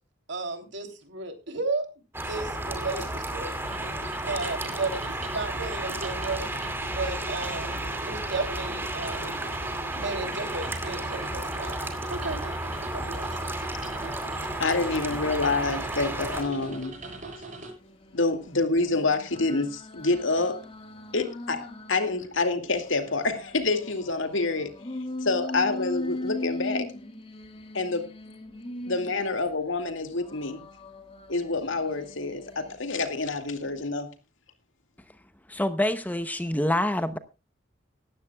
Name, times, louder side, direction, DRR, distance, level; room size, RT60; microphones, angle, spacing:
voice 1, 0.3-1.8 2.3-3.5 4.3-6.5 6.9-9.5 9.9-11.8 12.1-12.4 12.9-13.4, right 3 dB, 65° right, 3.2 m, -34 dB
sound 1, 2.1-16.4, right 1 dB, 10° right, 2.4 m, -33 dB
sound 2, 3.6-17.7, right 2 dB, 40° right, 7.6 m, -41 dB
voice 2, 14.6-16.9 18.1-20.6 21.1-24.7 25.2-26.9 27.7-28.1 28.9-30.6 31.3-34.1, left 3 dB, 80° left, 2.3 m, -27 dB
sound 3, 15.1-17.2 17.6-22.2 22.6-29.6 30.1-33.0 33.5-33.8, left 2 dB, 30° left, 1.7 m, -40 dB
voice 3, 35.5-37.2, left 1 dB, 10° left, 0.8 m, -26 dB
18.5 x 14.5 x 2.3 m
head